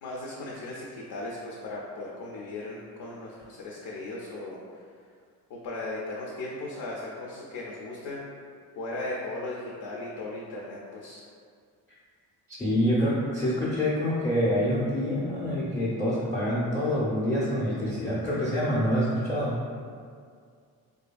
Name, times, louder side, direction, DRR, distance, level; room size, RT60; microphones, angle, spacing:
voice 1, 0.0-4.6 5.5-8.2 8.8-11.2, left 2 dB, 65° left, -3 dB, 0.5 m, -37 dB
voice 2, 12.5-19.6, equal, 10° left, -8 dB, 0.5 m, -26 dB
2.7 x 2.5 x 2.2 m, 2.1 s
cardioid pair, 90°, 38 cm